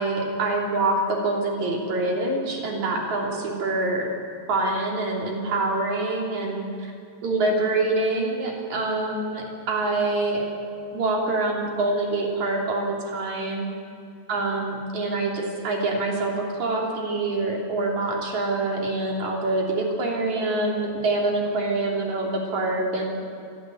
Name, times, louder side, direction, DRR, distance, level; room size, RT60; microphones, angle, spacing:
voice 1, 0.0-4.1 4.5-6.9 7.2-10.4 10.9-13.7 14.3-23.2, right 2 dB, 40° right, -1 dB, 4.0 m, -25 dB
27.5 x 12.0 x 9.3 m, 2.5 s
omnidirectional pair, 5.6 m